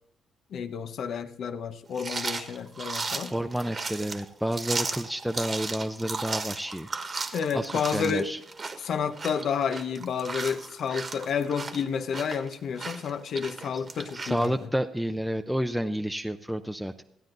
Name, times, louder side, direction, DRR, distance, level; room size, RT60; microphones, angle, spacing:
voice 1, 0.5-3.3 7.3-8.3 8.8-14.5, left 6 dB, 65° left, 8 dB, 0.9 m, -30 dB
sound 1, 1.9-14.5, right 4 dB, 35° right, 1.4 m, -35 dB
voice 2, 3.3-6.9 7.2-8.4 14.1-17.0, equal, 5° right, 6 dB, 0.6 m, -30 dB
15.0 x 9.2 x 3.9 m, 0.77 s
cardioid pair, 90°, 0 cm